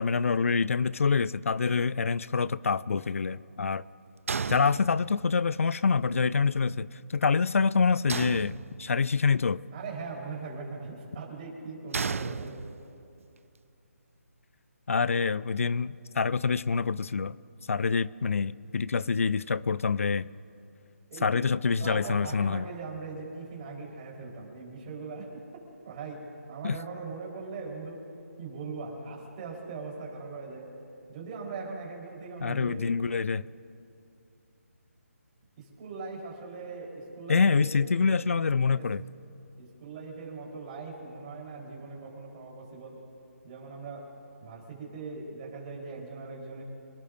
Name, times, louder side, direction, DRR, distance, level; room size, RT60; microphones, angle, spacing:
voice 1, 0.0-3.8 4.5-9.6 14.9-17.3 17.7-20.3 21.2-22.7 26.6-26.8 32.4-33.4 37.3-39.0, left 5 dB, 60° left, 18 dB, 0.5 m, -26 dB
sound 1, 4.3-5.4 8.1-9.1 11.9-13.0, right 5 dB, 60° right, 0.5 m, -34 dB
voice 2, 9.7-12.7 21.1-21.3 21.8-25.4 25.8-28.1 28.4-30.7 31.1-32.8 35.6-37.7 38.7-38.9 39.6-43.0 43.4-44.1 44.4-46.6, right 4 dB, 30° right, -2 dB, 4.2 m, -40 dB
27.0 x 18.5 x 2.7 m, 2.7 s
figure-of-eight pair, 155°, 8 cm